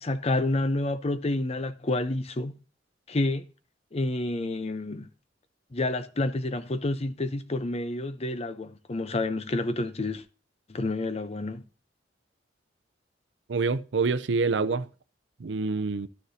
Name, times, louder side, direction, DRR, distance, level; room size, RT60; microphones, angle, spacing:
voice 1, 0.0-2.6 3.1-3.5 3.9-5.1 5.7-10.2 10.7-11.6, left 2 dB, 35° left, 0.7 m, -29 dB
voice 2, 13.5-14.9 15.4-16.1, right 4 dB, 85° right, 0.6 m, -26 dB
13.0 x 6.6 x 2.7 m
head